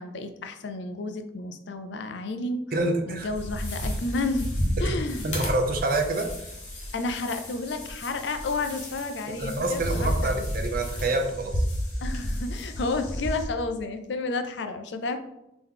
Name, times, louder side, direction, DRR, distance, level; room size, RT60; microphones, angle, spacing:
voice 1, 0.0-2.6 3.1-4.5 4.8-5.4 6.9-10.5 12.0-15.2, left 3 dB, 70° left, 8 dB, 0.4 m, -31 dB
voice 2, 2.7-3.3 4.8-5.0 5.2-6.5 9.4-11.6, right 2 dB, 50° right, 4 dB, 0.6 m, -27 dB
sound 1, 3.2-13.4, equal, 40° left, 1.1 m, -32 dB
3.6 x 2.9 x 3.7 m, 0.87 s
head